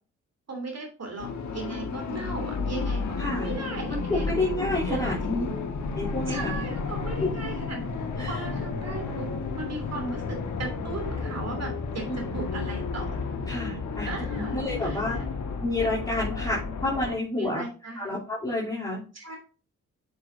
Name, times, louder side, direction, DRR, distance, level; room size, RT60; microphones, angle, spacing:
voice 1, 0.5-3.2 3.4-4.3 4.9-5.6 6.3-9.3 9.6-13.1 14.0-15.2 17.3-18.1 19.1-19.4, right 3 dB, 45° right, 2 dB, 2.7 m, -37 dB
sound 1, 1.2-17.2, left 4 dB, 55° left, 1.4 m, -32 dB
voice 2, 3.2-3.5 3.9-5.5 5.9-6.5 8.2-8.4 12.1-12.2 13.5-15.2 15.6-17.6 17.9-19.0, left 2 dB, 10° left, -8 dB, 3.2 m, -29 dB
7.6 x 6.8 x 2.7 m, 0.36 s
hypercardioid pair, 40°, 35 cm